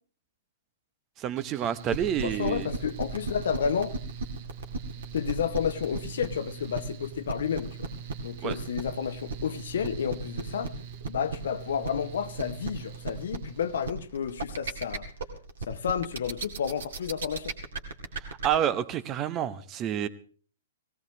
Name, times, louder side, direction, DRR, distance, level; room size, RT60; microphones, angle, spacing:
voice 1, 1.2-2.7 8.4-8.6 18.3-20.1, right 10 dB, 30° right, 0.9 m, -29 dB
Mechanical fan, 1.4-13.9, right 9 dB, 45° right, 1.1 m, -44 dB
sound 1, 1.9-18.5, right 3 dB, 65° right, 2.3 m, -34 dB
voice 2, 2.2-3.9 5.1-7.9 8.2-10.8 11.1-15.1 15.7-17.5, left 7 dB, 60° left, 0.9 m, -31 dB
19.0 x 17.0 x 3.2 m
figure-of-eight pair, 110°, 0 cm